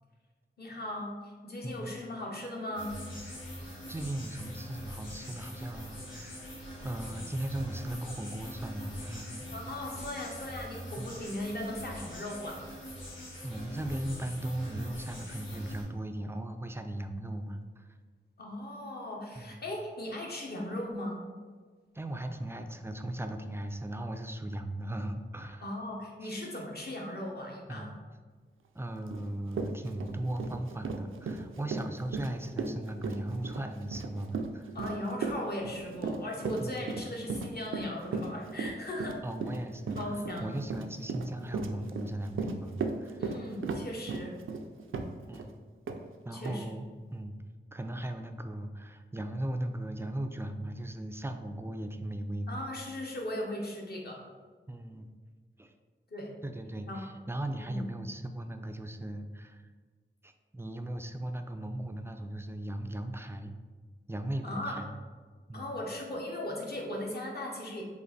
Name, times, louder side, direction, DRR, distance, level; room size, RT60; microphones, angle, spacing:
voice 1, 0.6-3.0 9.5-12.6 18.4-21.2 25.6-27.9 34.7-39.2 39.9-40.5 43.2-44.4 46.3-46.7 52.5-54.2 56.1-56.3 56.9-57.1 57.6-57.9 64.4-64.8 65.5-67.8, left 1 dB, 55° left, -1 dB, 1.0 m, -38 dB
sound 1, 2.7-15.8, equal, 75° left, 1.4 m, -43 dB
voice 2, 3.9-6.5 6.8-9.4 11.0-11.2 13.4-17.9 19.4-19.6 21.9-25.7 26.2-26.4 27.7-28.0 28.7-34.7 36.6-36.9 39.2-40.0 40.4-43.2 43.7-43.8 45.3-45.6 46.3-46.9 47.1-47.4 47.7-52.6 54.7-55.1 55.6-55.7 56.4-59.6 60.2-63.5 64.1-64.9 65.5-65.7, right 1 dB, 10° right, 6 dB, 0.3 m, -37 dB
Run, 29.1-29.2 29.5-45.5 45.9-46.0 46.4-46.6, right 4 dB, 85° right, 0.4 m, -36 dB
5.1 x 2.5 x 4.0 m, 1.5 s
wide cardioid pair, 90°, 20 cm